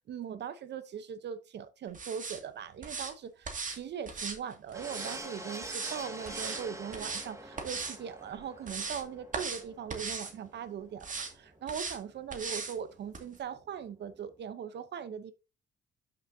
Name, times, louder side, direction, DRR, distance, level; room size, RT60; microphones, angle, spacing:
voice 1, 0.1-15.3, right 7 dB, 60° right, 0.8 m, -40 dB
sound 1, 1.9-2.4 2.8-3.1 3.4-3.8 4.1-5.2 5.6-6.0 6.2-6.6 6.9-7.3 7.6-8.0 8.4-9.0 9.3-9.6 9.9-10.3 11.0-11.3 11.7-12.0 12.3-12.7 13.1-13.2, right 4 dB, 40° right, 2.2 m, -38 dB
sound 2, 4.7-13.8 14.1-14.3, right 1 dB, 15° right, 1.9 m, -46 dB
12.0 x 6.1 x 2.7 m
cardioid pair, 90°, 20 cm